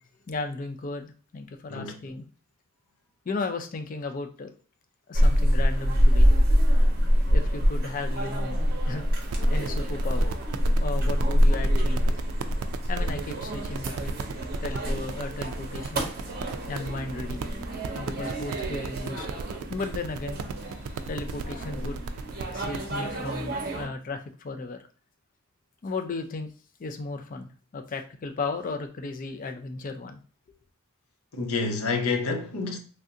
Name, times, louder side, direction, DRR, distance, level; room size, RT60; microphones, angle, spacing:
voice 1, 0.3-2.2 3.3-4.5 5.1-6.3 7.3-8.6 8.9-9.1 9.5-10.3 10.8-12.1 12.9-14.2 14.6-16.1 16.7-17.5 17.9-19.3 19.7-22.0 22.5-24.8 25.8-26.5 26.8-27.5 27.7-30.2, left 3 dB, 40° left, 0.4 m, -35 dB
sound 1, 5.1-23.9, equal, 45° right, 0.7 m, -25 dB
sound 2, 9.2-22.9, right 5 dB, 75° right, 0.3 m, -37 dB
voice 2, 31.3-32.8, left 4 dB, 85° left, 0.6 m, -28 dB
3.3 x 2.5 x 2.6 m
head